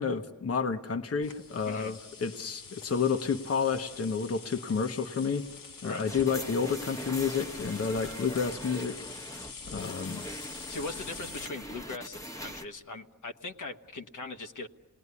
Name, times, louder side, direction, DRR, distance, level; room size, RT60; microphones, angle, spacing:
voice 1, 0.0-5.4 5.8-9.3 9.7-10.2, left 5 dB, 45° left, 6 dB, 1.1 m, -30 dB
sound 1, 1.2-11.5, left 5 dB, 90° left, 1.8 m, -46 dB
voice 2, 1.6-2.0 5.8-6.1 10.7-14.7, left 3 dB, 70° left, 6 dB, 1.2 m, -40 dB
sound 2, 6.1-12.6, equal, 10° left, 1.3 m, -42 dB
29.5 x 20.0 x 9.8 m, 1.4 s
wide cardioid pair, 115°, 33 cm